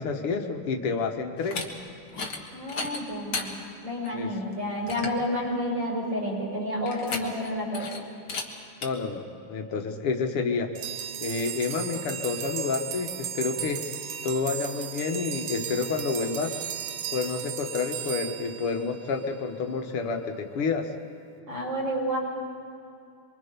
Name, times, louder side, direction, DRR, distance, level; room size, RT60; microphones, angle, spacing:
voice 1, 0.0-1.6 4.1-4.4 8.8-10.7 11.2-13.8 14.2-16.6 17.1-20.9, left 4 dB, 80° left, 4 dB, 2.3 m, -29 dB
sound 1, 1.4-1.7 2.1-2.4 2.7-3.5 4.0-4.1 4.5-4.6 4.9-5.2 6.9-7.5 7.7-8.0 8.3-8.5 8.8-8.9, left 4 dB, 45° left, 2.1 m, -34 dB
voice 2, 2.5-7.9 21.5-22.2, equal, 55° right, -3 dB, 6.8 m, -30 dB
sound 2, 10.7-19.3, right 9 dB, 85° right, 1.8 m, -36 dB
25.0 x 24.5 x 5.3 m, 2.6 s
omnidirectional pair, 2.4 m